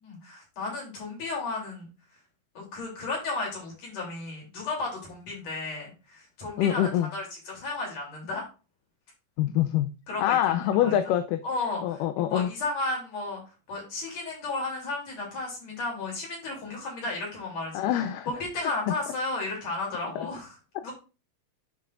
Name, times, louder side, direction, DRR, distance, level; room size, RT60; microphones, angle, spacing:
voice 1, 0.0-1.9 2.5-8.5 10.1-11.0 11.4-13.4 13.7-17.8 18.3-20.9, left 3 dB, 50° left, -1 dB, 4.1 m, -34 dB
voice 2, 6.6-7.1 9.4-9.9 10.2-11.4 11.8-12.5 17.7-18.3 18.9-19.0 20.2-20.3, left 11 dB, 80° left, 9 dB, 2.1 m, -25 dB
10.5 x 5.5 x 2.5 m, 0.31 s
omnidirectional pair, 3.9 m